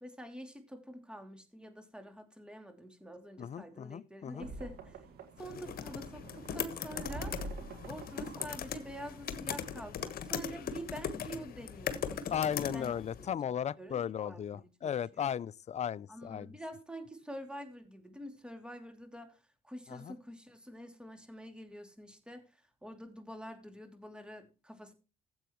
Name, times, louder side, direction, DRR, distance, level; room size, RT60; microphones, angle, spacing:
voice 1, 0.0-4.9 5.4-7.3 7.8-14.4 14.8-15.3 16.1-19.4 19.6-22.4 22.8-24.9, right 1 dB, 5° right, 2.8 m, -47 dB
voice 2, 3.4-4.5 12.3-16.6 19.9-20.2, left 9 dB, 45° left, 0.5 m, -36 dB
sound 1, 4.4-9.4, right 2 dB, 75° right, 1.9 m, -47 dB
sound 2, 5.4-13.3, left 8 dB, 65° left, 1.3 m, -39 dB
15.0 x 7.9 x 3.1 m
supercardioid pair, 70°, 16 cm